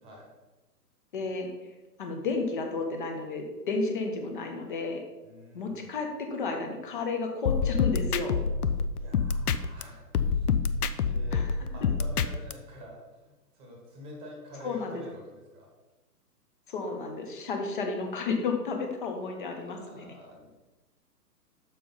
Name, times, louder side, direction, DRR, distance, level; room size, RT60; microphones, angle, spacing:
voice 1, 1.1-1.5 2.0-5.0 5.5-8.4 11.3-11.5 14.6-15.0 16.7-20.1, left 4 dB, 30° left, 3 dB, 0.9 m, -32 dB
voice 2, 5.2-5.9 8.9-10.5 11.0-15.7 19.6-20.5, equal, 10° right, -1 dB, 1.2 m, -48 dB
sound 1, 7.5-9.8 10.1-12.5, left 5 dB, 65° left, 0.6 m, -27 dB
6.9 x 4.9 x 5.4 m, 1.1 s
hypercardioid pair, 155°, 49 cm